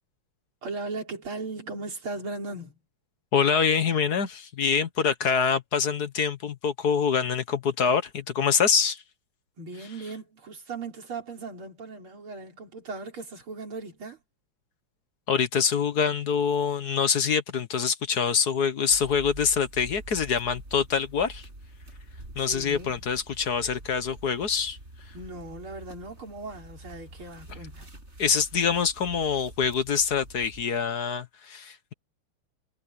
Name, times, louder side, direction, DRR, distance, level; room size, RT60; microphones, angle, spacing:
voice 1, 0.6-2.8 9.6-14.2 22.4-23.0 25.1-28.0, right 3 dB, 70° right, 5.2 m, -38 dB
voice 2, 3.3-9.0 15.3-21.5 22.3-24.8 28.2-31.9, left 6 dB, 50° left, 1.5 m, -25 dB
sound 1, 18.9-30.7, right 1 dB, 30° right, 7.5 m, -46 dB
omnidirectional pair, 2.4 m